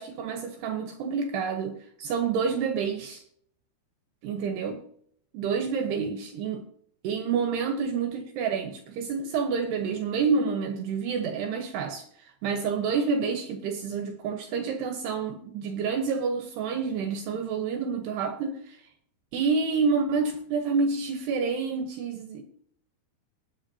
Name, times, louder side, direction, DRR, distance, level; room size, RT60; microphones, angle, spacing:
voice 1, 0.0-3.2 4.2-4.8 5.3-6.6 7.0-18.8 19.3-22.4, right 5 dB, 70° right, 5 dB, 2.7 m, -28 dB
19.5 x 8.2 x 2.8 m, 0.63 s
omnidirectional pair, 5.7 m